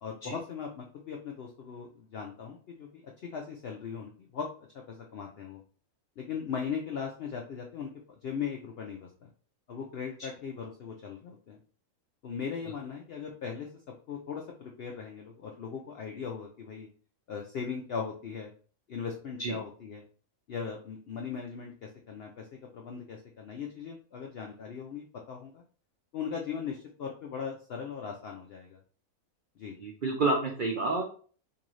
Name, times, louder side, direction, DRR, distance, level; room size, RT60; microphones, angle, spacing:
voice 1, 0.0-4.5 4.9-5.6 6.2-9.3 9.7-11.6 12.2-13.7 14.1-16.9 17.3-18.5 18.9-20.0 20.5-22.5 22.7-25.6 26.1-28.8 29.6-29.8, left 6 dB, 80° left, 1 dB, 0.5 m, -39 dB
voice 2, 29.8-31.0, right 3 dB, 75° right, 1 dB, 0.4 m, -29 dB
3.8 x 2.7 x 3.1 m, 0.43 s
omnidirectional pair, 1.6 m